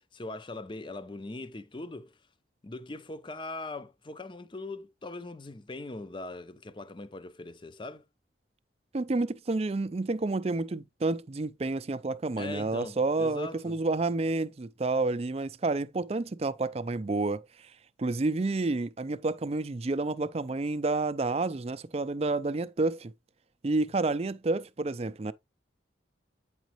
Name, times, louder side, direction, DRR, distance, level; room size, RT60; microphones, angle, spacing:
voice 1, 0.1-2.2 2.6-8.1 12.4-13.8, left 2 dB, 25° left, 0.5 m, -41 dB
voice 2, 8.9-17.7 18.0-23.1 23.6-25.3, right 3 dB, 30° right, 0.4 m, -29 dB
9.1 x 5.0 x 3.0 m
head